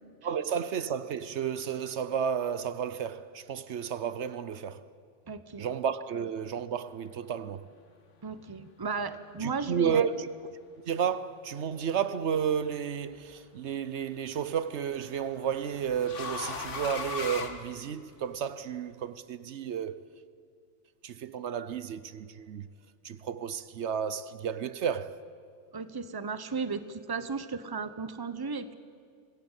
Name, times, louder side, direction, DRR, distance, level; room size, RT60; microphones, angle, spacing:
voice 1, 0.2-4.9 5.6-7.7 9.4-10.3 10.9-20.0 21.0-22.7 23.0-25.2, right 7 dB, 75° right, 1.0 m, -32 dB
voice 2, 5.3-5.7 8.2-10.1 25.7-28.7, right 5 dB, 20° right, 0.9 m, -35 dB
sound 1, 12.4-12.9 14.4-18.3, left 4 dB, 90° left, 1.9 m, -39 dB
25.5 x 17.5 x 8.1 m
omnidirectional pair, 1.2 m